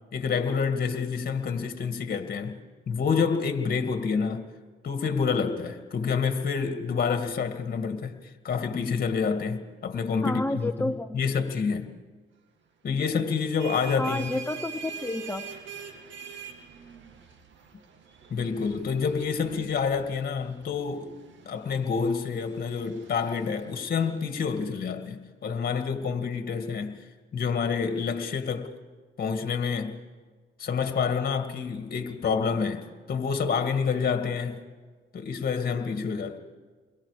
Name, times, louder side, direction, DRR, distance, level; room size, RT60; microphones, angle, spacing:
voice 1, 0.1-2.6 2.9-4.5 4.8-8.2 8.4-11.9 12.8-14.3 18.3-21.1 21.5-27.0 27.3-28.7 29.2-30.0 30.6-32.8 33.1-34.6 35.1-36.4, left 5 dB, 50° left, 2.0 m, -28 dB
voice 2, 10.2-11.2 14.0-15.5, left 2 dB, 10° left, 0.8 m, -30 dB
sound 1, 13.3-24.7, right 7 dB, 70° right, 2.3 m, -45 dB
29.5 x 22.0 x 5.0 m
cardioid pair, 90°, 20 cm